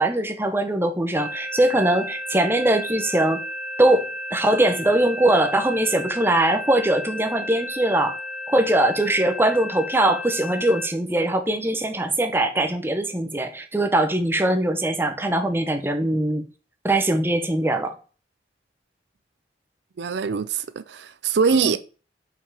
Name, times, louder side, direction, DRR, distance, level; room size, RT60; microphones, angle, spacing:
voice 1, 0.0-3.4 3.8-8.2 8.5-16.5 16.8-17.9 21.5-21.8, right 1 dB, 15° right, 0.8 m, -21 dB
sound 1, 1.2-10.9, left 1 dB, 35° left, 1.6 m, -33 dB
voice 2, 20.0-21.8, right 5 dB, 70° right, 0.5 m, -23 dB
5.6 x 5.4 x 4.9 m
head